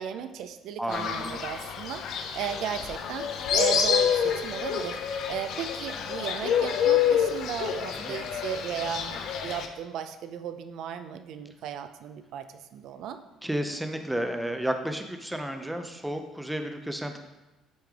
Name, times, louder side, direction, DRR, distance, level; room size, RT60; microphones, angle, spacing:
voice 1, 0.0-12.5 12.7-13.2, right 8 dB, 65° right, 9 dB, 0.4 m, -36 dB
voice 2, 0.8-1.4 7.9-8.2 13.4-17.2, right 1 dB, 5° right, 6 dB, 0.5 m, -32 dB
Fowl, 0.9-9.7, left 8 dB, 60° left, 0.5 m, -28 dB
9.2 x 3.3 x 3.5 m, 1.0 s
cardioid pair, 135°, 0 cm